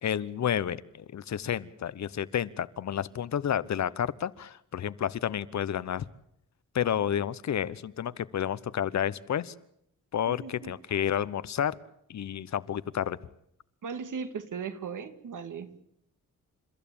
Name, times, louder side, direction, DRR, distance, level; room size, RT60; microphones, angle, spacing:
voice 1, 0.0-6.0 6.7-9.5 10.1-11.8 12.1-13.2, left 9 dB, 60° left, 17 dB, 0.9 m, -30 dB
voice 2, 10.3-11.0 13.8-15.8, right 6 dB, 75° right, 9 dB, 2.3 m, -38 dB
30.0 x 14.5 x 8.7 m, 0.73 s
wide cardioid pair, 160°, 31 cm